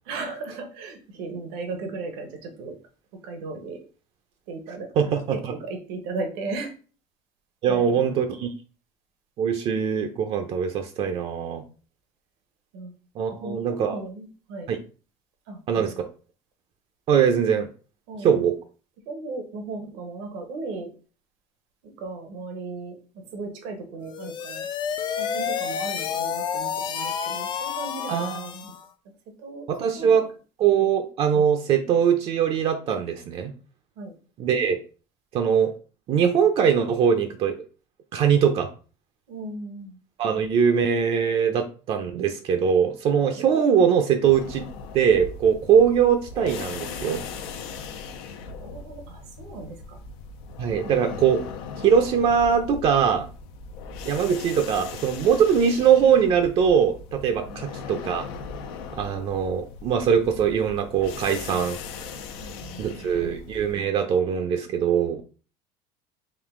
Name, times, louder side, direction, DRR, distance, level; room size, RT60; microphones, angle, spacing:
voice 1, 0.0-2.8 3.2-3.8 4.5-6.7 7.7-8.2 12.7-12.9 13.3-14.7 15.5-16.0 18.1-18.4 19.0-20.9 21.8-24.7 25.2-28.7 29.3-29.7 29.9-30.2 34.0-34.1 39.3-40.0 43.3-43.4 48.6-50.0 57.5-57.6 62.4-63.4, right 3 dB, 85° right, 4 dB, 1.1 m, -36 dB
voice 2, 5.0-5.5 7.6-8.5 9.4-11.6 13.2-14.0 14.7-14.8 15.7-15.9 17.1-17.7 18.2-18.6 28.1-28.4 29.7-30.2 30.6-33.5 34.4-34.8 35.3-35.7 36.1-37.6 38.1-38.7 40.2-44.6 44.9-47.2 50.6-51.4 51.8-53.3 54.0-58.2 58.9-61.8 62.8-65.2, right 7 dB, 50° right, 5 dB, 0.5 m, -22 dB
sound 1, 24.0-28.9, left 7 dB, 35° left, 0.4 m, -30 dB
sound 2, 44.2-63.7, left 5 dB, 85° left, 0.6 m, -39 dB
3.7 x 2.6 x 3.6 m, 0.37 s
cardioid pair, 120°, 13 cm